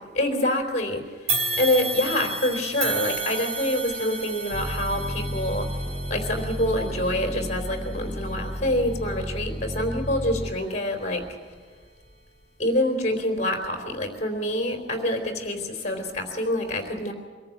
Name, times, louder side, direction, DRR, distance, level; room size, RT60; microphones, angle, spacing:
voice 1, 0.1-5.7 6.1-11.2 12.6-17.1, left 1 dB, 40° left, 4 dB, 3.7 m, -26 dB
sound 1, 1.3-10.6 11.1-11.3 12.2-12.3, right 3 dB, 40° right, 3.9 m, -33 dB
sound 2, 4.5-10.5, equal, ahead, 1.2 m, -32 dB
24.0 x 14.5 x 8.6 m, 1.6 s
head